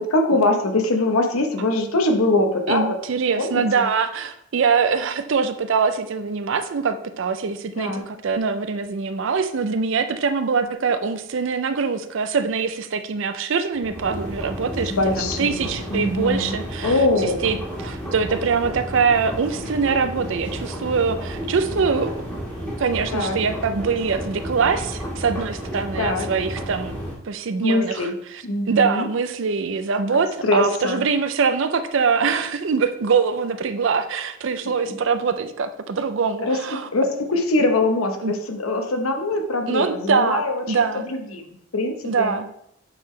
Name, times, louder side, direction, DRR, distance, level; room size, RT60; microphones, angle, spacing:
voice 1, 0.0-3.0 3.4-3.9 7.8-8.0 14.8-16.5 16.8-17.5 23.1-23.4 26.0-26.3 27.6-28.2 28.4-29.1 30.1-31.0 36.4-36.6 36.9-41.5 41.7-42.3, left 2 dB, 90° left, 4 dB, 0.9 m, -23 dB
voice 2, 2.7-16.9 17.4-22.1 22.8-27.0 27.2-36.9 38.2-38.3 39.7-41.1 42.0-42.5, right 5 dB, 65° right, 11 dB, 0.5 m, -23 dB
sound 1, 13.7-27.1, equal, 10° left, 1.5 m, -32 dB
8.4 x 3.7 x 3.2 m, 0.74 s
head